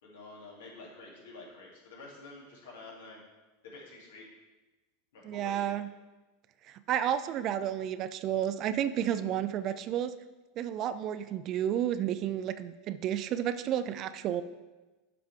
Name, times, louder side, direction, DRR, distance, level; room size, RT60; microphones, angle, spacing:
voice 1, 0.0-3.2 3.6-4.2 5.1-5.7, left 3 dB, 70° left, -3 dB, 2.7 m, -49 dB
voice 2, 5.2-5.9 6.7-10.1 10.6-14.4, right 10 dB, 45° right, 12 dB, 0.5 m, -31 dB
11.5 x 5.0 x 3.4 m, 1.2 s
hypercardioid pair, 85°, 0 cm